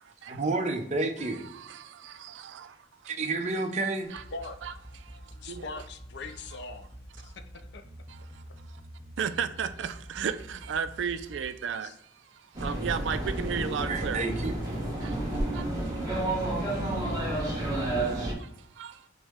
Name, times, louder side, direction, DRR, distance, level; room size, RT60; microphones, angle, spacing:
voice 1, 0.3-1.4 3.1-4.1 13.9-14.6, right 3 dB, 40° right, 0.6 m, -30 dB
sound 1, 4.1-11.4, equal, 10° left, 0.6 m, -47 dB
voice 2, 5.4-7.8 8.2-8.3 11.8-12.0, left 3 dB, 65° left, 0.5 m, -42 dB
voice 3, 9.2-9.9 10.2-11.9 12.6-14.2, right 7 dB, 75° right, 0.4 m, -32 dB
sound 2, 12.5-18.3, right 1 dB, 20° right, 1.1 m, -30 dB
6.1 x 2.1 x 3.5 m
head